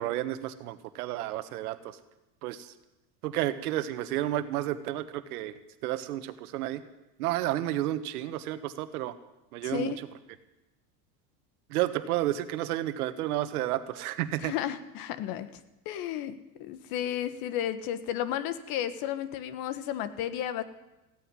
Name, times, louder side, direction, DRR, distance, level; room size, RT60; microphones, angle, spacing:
voice 1, 0.0-2.0 2.4-2.7 3.2-6.8 7.2-9.1 9.5-10.1 11.7-14.5, right 14 dB, 80° right, 11 dB, 1.4 m, -31 dB
voice 2, 9.6-10.0 14.4-15.5 15.8-20.6, left 10 dB, 50° left, 13 dB, 1.4 m, -33 dB
15.5 x 9.4 x 9.8 m, 0.98 s
supercardioid pair, 120°, 44 cm